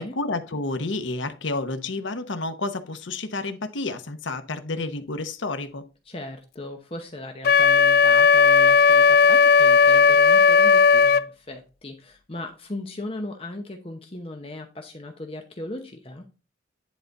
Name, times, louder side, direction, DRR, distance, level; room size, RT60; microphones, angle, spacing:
voice 1, 0.0-5.8, left 2 dB, 80° left, 0.9 m, -30 dB
voice 2, 6.1-16.3, left 1 dB, 30° left, 0.8 m, -37 dB
Wind instrument woodwind instrument, 7.4-11.2, left 5 dB, 50° left, 0.3 m, -15 dB
10.5 x 4.0 x 4.0 m
head